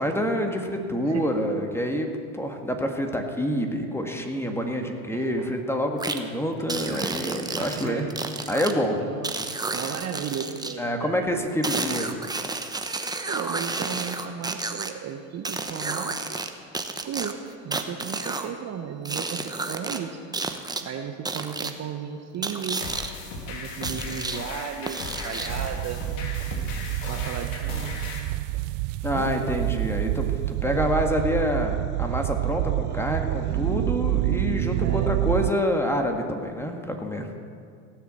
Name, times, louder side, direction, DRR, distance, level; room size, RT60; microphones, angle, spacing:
voice 1, 0.0-8.1 8.5-9.0 10.8-12.1 29.0-37.3, equal, 5° left, 3 dB, 1.8 m, -27 dB
voice 2, 1.0-1.3 5.1-5.5 7.6-8.4 9.0-11.2 13.3-16.5 16.9-20.3 20.8-22.9 23.2-26.0 26.8-28.0 28.5-28.6 29.1-29.5 30.6-30.9 32.9-33.4 34.8-35.1, right 8 dB, 40° right, 5 dB, 1.0 m, -35 dB
sound 1, 6.0-6.2 6.7-8.7 9.2-10.7 11.6-14.9 15.4-16.5 16.7-18.5 19.0-20.0 20.3-20.8 21.2-21.7 22.4-23.1 23.8-24.4 24.9-25.6, right 3 dB, 10° right, 1.0 m, -31 dB
sound 2, 22.8-28.2, left 3 dB, 75° left, 2.5 m, -36 dB
sound 3, 25.4-35.5, right 18 dB, 70° right, 0.5 m, -27 dB
17.0 x 7.2 x 7.5 m, 2.2 s
hypercardioid pair, 95°, 40 cm